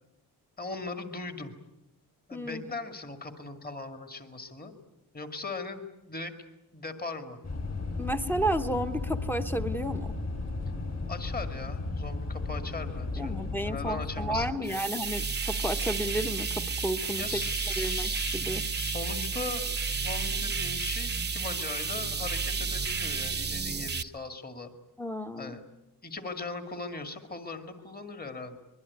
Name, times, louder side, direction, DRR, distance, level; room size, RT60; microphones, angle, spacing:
voice 1, 0.6-1.5 2.3-4.7 5.1-5.8 6.1-6.3 6.7-7.4 11.1-13.3 13.6-14.8 17.2-18.4 18.7-24.7 25.4-25.6 26.0-28.6, left 3 dB, 20° left, 7 dB, 2.1 m, -39 dB
voice 2, 2.3-2.7 8.0-10.1 13.2-17.4 17.8-18.6 25.0-25.6, equal, 5° left, 8 dB, 1.1 m, -32 dB
sound 1, 7.4-14.5, left 3 dB, 40° left, 4.2 m, -34 dB
sound 2, 14.6-24.0, right 4 dB, 25° right, 0.9 m, -31 dB
24.5 x 22.0 x 9.6 m, 0.93 s
wide cardioid pair, 170°, 40 cm